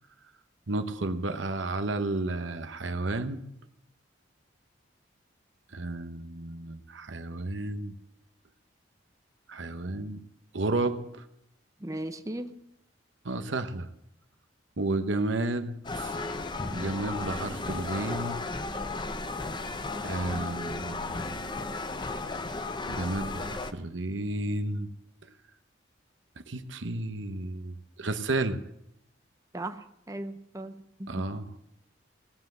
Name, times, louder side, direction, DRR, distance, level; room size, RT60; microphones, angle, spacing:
voice 1, 0.7-3.4 5.7-7.9 9.5-10.2 10.5-11.2 13.2-13.9 14.8-16.2 16.7-18.4 20.0-21.2 22.9-24.9 26.5-28.6 31.1-31.5, right 2 dB, 75° right, 10 dB, 1.0 m, -32 dB
voice 2, 11.8-12.5 29.5-30.7 31.0-31.1, right 1 dB, 15° right, 7 dB, 0.7 m, -37 dB
sound 1, 15.8-23.7, left 3 dB, 25° left, 0.8 m, -34 dB
17.5 x 7.8 x 7.9 m, 0.79 s
head